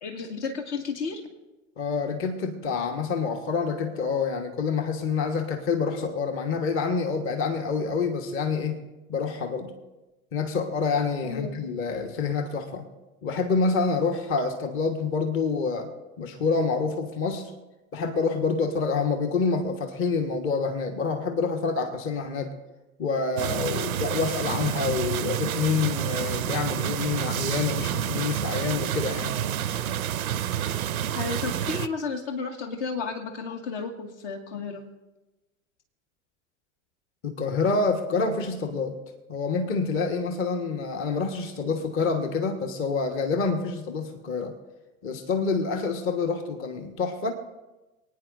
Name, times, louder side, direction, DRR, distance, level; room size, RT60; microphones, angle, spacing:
voice 1, 0.0-1.2 11.2-11.6 31.2-34.8, left 4 dB, 55° left, 3 dB, 1.9 m, -32 dB
voice 2, 1.8-8.8 9.1-9.7 10.3-12.8 13.2-15.9 16.2-17.5 17.9-22.5 23.0-29.4 37.2-39.0 39.3-44.5 45.0-47.3, left 4 dB, 30° left, 6 dB, 1.3 m, -27 dB
sound 1, 23.4-31.9, right 10 dB, 80° right, 0.6 m, -29 dB
27.0 x 9.6 x 2.6 m, 1.1 s
figure-of-eight pair, 90°, 41 cm